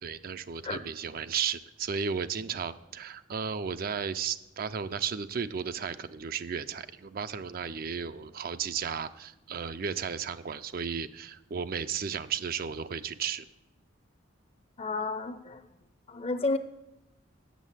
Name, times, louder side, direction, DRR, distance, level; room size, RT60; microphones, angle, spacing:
voice 1, 0.0-13.5, right 6 dB, 50° right, 12 dB, 0.4 m, -34 dB
voice 2, 14.8-15.7 16.1-16.6, left 3 dB, 30° left, 12 dB, 0.6 m, -31 dB
8.2 x 7.1 x 7.3 m, 0.90 s
head